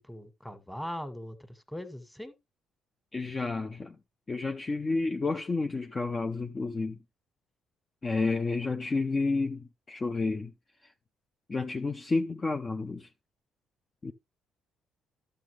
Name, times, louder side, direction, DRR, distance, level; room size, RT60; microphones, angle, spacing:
voice 1, 0.0-2.3, left 1 dB, 5° left, 2.0 m, -40 dB
voice 2, 3.1-4.0 4.3-7.0 8.0-10.5 10.8-10.9 11.5-13.1 14.0-14.1, left 3 dB, 35° left, 0.8 m, -30 dB
11.5 x 6.6 x 3.3 m
hypercardioid pair, 55°, 0 cm